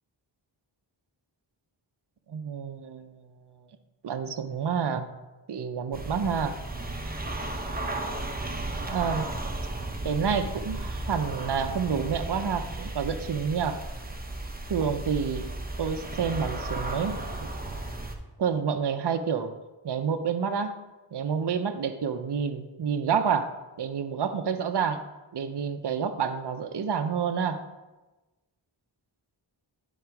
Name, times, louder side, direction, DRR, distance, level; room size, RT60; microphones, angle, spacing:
voice 1, 2.3-3.3 4.0-5.1 5.5-6.6 8.8-9.3 10.0-13.8 14.7-15.5 15.8-17.5 18.4-19.5 19.8-20.7 21.1-23.5 23.8-25.0 25.3-27.6, right 6 dB, 55° right, 8 dB, 0.6 m, -29 dB
sound 1, 5.9-18.1, right 2 dB, 20° right, 0.9 m, -34 dB
10.5 x 4.0 x 4.7 m, 1.1 s
wide cardioid pair, 40°, 48 cm